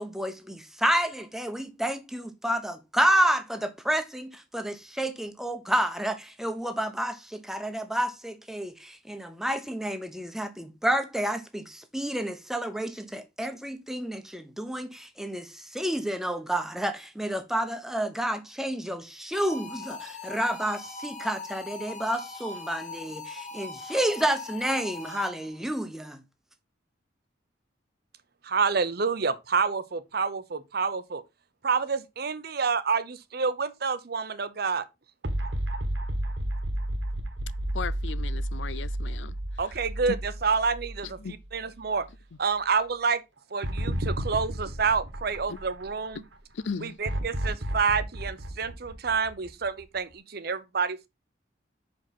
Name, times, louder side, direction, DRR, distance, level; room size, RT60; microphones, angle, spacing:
voice 1, 0.0-26.2, right 1 dB, ahead, 1.0 m, -30 dB
sound 1, 19.3-25.6, left 3 dB, 40° left, 2.0 m, -41 dB
voice 2, 28.4-31.2 31.6-34.8 39.6-42.1 42.4-43.2 43.5-46.2 46.8-51.1, right 5 dB, 60° right, 0.8 m, -28 dB
sound 2, 35.2-41.6 42.0-42.1 43.6-46.1 47.0-49.8, right 1 dB, 80° right, 1.6 m, -32 dB
voice 3, 37.7-39.3 41.2-41.3 46.6-46.9, left 5 dB, 80° left, 0.5 m, -36 dB
5.6 x 5.2 x 5.7 m
head